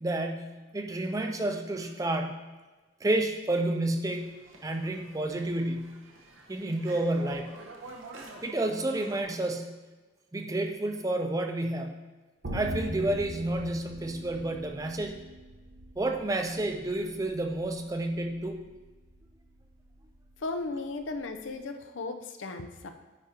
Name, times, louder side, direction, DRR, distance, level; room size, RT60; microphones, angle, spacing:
voice 1, 0.0-2.5 3.0-4.4 4.6-6.0 6.5-7.6 8.4-9.8 10.3-12.1 12.5-15.2 16.0-18.6, right 1 dB, 15° right, 5 dB, 0.4 m, -30 dB
sound 1, 4.1-9.2, right 2 dB, 80° right, 0.9 m, -48 dB
sound 2, 12.4-21.5, equal, 50° right, 0.8 m, -42 dB
voice 2, 20.4-22.9, left 3 dB, 70° left, 6 dB, 0.5 m, -36 dB
9.2 x 5.0 x 2.8 m, 1.3 s
head